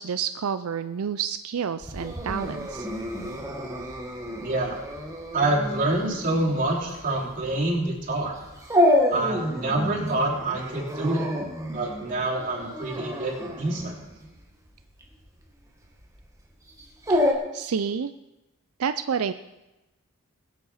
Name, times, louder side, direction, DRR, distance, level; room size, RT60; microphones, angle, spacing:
voice 1, 0.0-2.9 17.1-18.1 18.8-19.3, right 7 dB, 85° right, 11 dB, 0.5 m, -29 dB
Dog, 1.8-17.3, left 1 dB, 15° right, 1.7 m, -29 dB
voice 2, 4.4-4.8 5.3-8.4 9.1-11.3 11.7-13.9, right 2 dB, 40° right, -3 dB, 3.4 m, -27 dB
21.0 x 7.4 x 5.7 m, 1.0 s
head